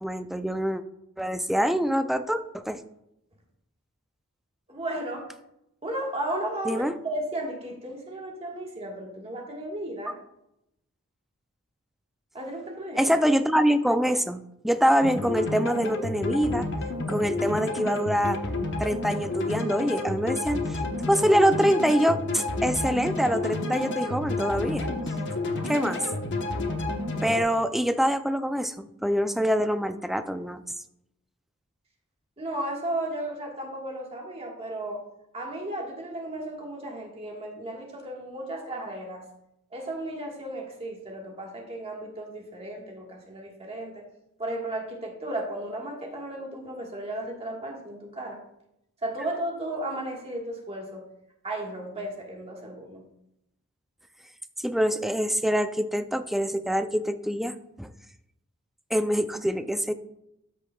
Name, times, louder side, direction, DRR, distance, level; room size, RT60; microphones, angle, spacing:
voice 1, 0.0-0.8 1.2-2.8 6.7-6.9 13.0-16.7 17.1-18.4 18.8-20.8 21.1-24.9 25.6-26.1 27.2-30.6 54.6-57.9 58.9-59.9, equal, ahead, 9 dB, 0.3 m, -25 dB
voice 2, 4.7-5.3 5.8-10.1 12.3-13.2 32.4-35.0 35.3-39.2 39.7-44.0 44.4-48.4 49.0-51.0 51.4-53.0, right 1 dB, 30° right, -1 dB, 1.4 m, -34 dB
sound 1, 15.0-27.4, left 2 dB, 55° left, 0.9 m, -30 dB
13.0 x 6.2 x 2.3 m, 0.82 s
head